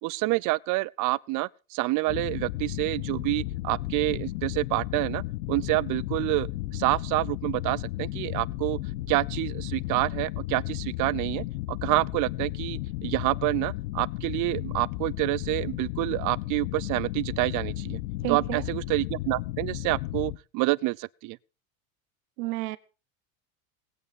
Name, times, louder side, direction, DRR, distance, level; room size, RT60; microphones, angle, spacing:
voice 1, 0.0-5.2 5.5-6.5 6.7-8.8 9.1-18.0 18.3-21.4, right 22 dB, 50° right, 0.6 m, -28 dB
sound 1, 2.1-20.4, left 17 dB, 85° left, 1.1 m, -34 dB
voice 2, 18.2-18.7 22.4-22.8, right 21 dB, 80° right, 1.2 m, -31 dB
19.0 x 8.8 x 5.2 m
supercardioid pair, 130°, 41 cm